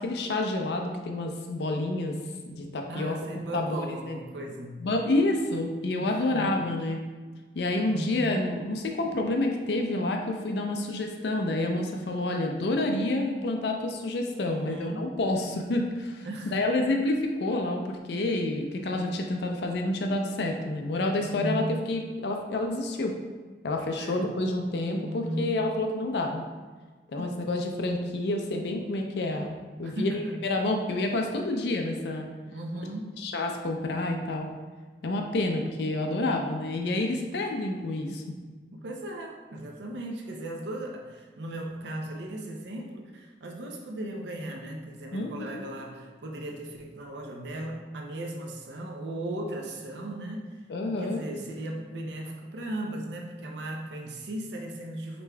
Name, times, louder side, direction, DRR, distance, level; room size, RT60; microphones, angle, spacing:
voice 1, 0.0-2.2 2.5-3.1 3.5-4.2 4.8-7.0 7.5-23.2 23.6-26.4 27.1-32.3 33.2-34.5 35.0-38.2 45.1-45.6 50.7-51.2, left 2 dB, 70° left, 3 dB, 0.4 m, -29 dB
voice 2, 2.9-4.9 6.0-6.5 7.9-8.4 14.4-15.1 16.2-16.6 21.2-21.8 24.0-24.3 25.0-25.6 27.2-27.5 29.8-30.3 32.5-33.2 38.7-55.2, right 1 dB, 80° right, 2 dB, 0.5 m, -37 dB
5.0 x 3.4 x 2.2 m, 1.4 s
head